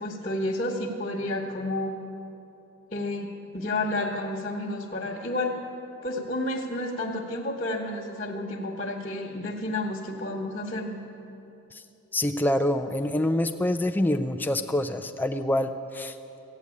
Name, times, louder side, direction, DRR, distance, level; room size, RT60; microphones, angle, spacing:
voice 1, 0.0-2.0 2.9-3.3 3.5-5.6 6.0-11.0, left 1 dB, 40° left, -5 dB, 1.1 m, -30 dB
voice 2, 12.1-16.1, left 1 dB, 10° left, 5 dB, 0.4 m, -26 dB
14.0 x 9.4 x 8.5 m, 2.9 s
head